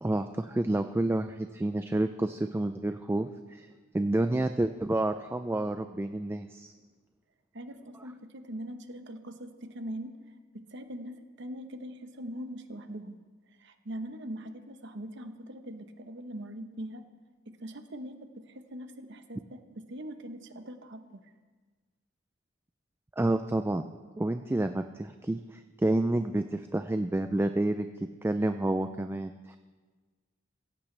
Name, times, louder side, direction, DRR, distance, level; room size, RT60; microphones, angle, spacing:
voice 1, 0.0-3.7 3.9-6.7 23.2-23.8 24.2-27.9 28.2-29.6, right 1 dB, 10° right, 8 dB, 0.3 m, -29 dB
voice 2, 7.5-10.2 10.5-13.2 13.6-17.0 17.5-21.2, equal, 60° right, 8 dB, 1.0 m, -42 dB
16.5 x 14.5 x 3.3 m, 1.4 s
head